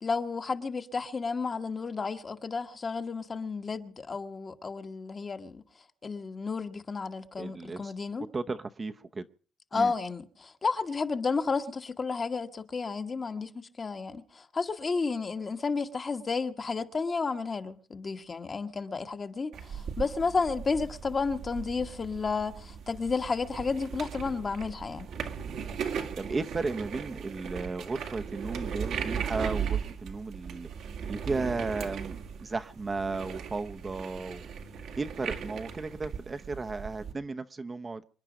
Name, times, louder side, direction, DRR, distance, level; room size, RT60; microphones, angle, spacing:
voice 1, 0.0-5.6 6.0-8.3 9.7-13.5 13.8-25.1, left 4 dB, 35° left, 1.4 m, -32 dB
voice 2, 7.4-7.9 8.3-9.3 9.7-9.9 26.2-30.7 31.1-34.5 35.0-38.0, right 3 dB, 30° right, 0.9 m, -34 dB
sound 1, 19.5-37.1, right 7 dB, 75° right, 2.0 m, -38 dB
26.5 x 10.0 x 5.1 m
cardioid pair, 90°, 0 cm